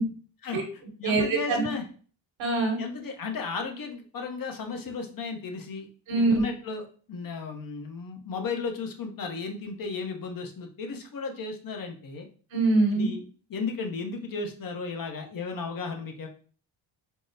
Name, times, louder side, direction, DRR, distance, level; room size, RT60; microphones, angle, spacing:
voice 1, 0.4-1.8 2.8-5.9 6.1-12.3 12.9-13.2 13.5-16.3, left 4 dB, 45° left, 4 dB, 0.8 m, -35 dB
voice 2, 1.0-1.7 2.4-2.8 6.1-6.4 12.5-13.1, right 3 dB, 75° right, 1 dB, 1.2 m, -23 dB
3.7 x 2.0 x 2.6 m, 0.41 s
supercardioid pair, 60°, 48 cm